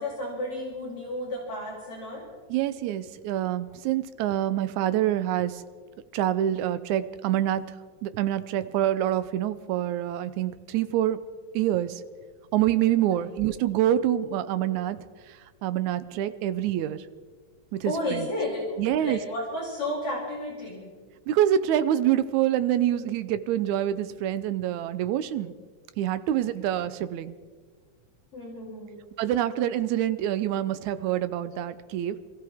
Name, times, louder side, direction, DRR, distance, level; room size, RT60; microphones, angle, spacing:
voice 1, 0.0-2.3 13.2-13.3 17.8-20.9 26.6-26.7 28.3-29.0, left 1 dB, 50° left, -4 dB, 3.5 m, -32 dB
voice 2, 2.5-5.6 6.1-7.8 8.0-11.2 11.5-12.0 12.5-17.0 17.7-18.3 18.8-19.2 21.3-25.5 26.0-27.4 29.2-32.2, right 11 dB, 80° right, 13 dB, 2.0 m, -26 dB
26.5 x 14.5 x 3.5 m, 1.5 s
omnidirectional pair, 3.5 m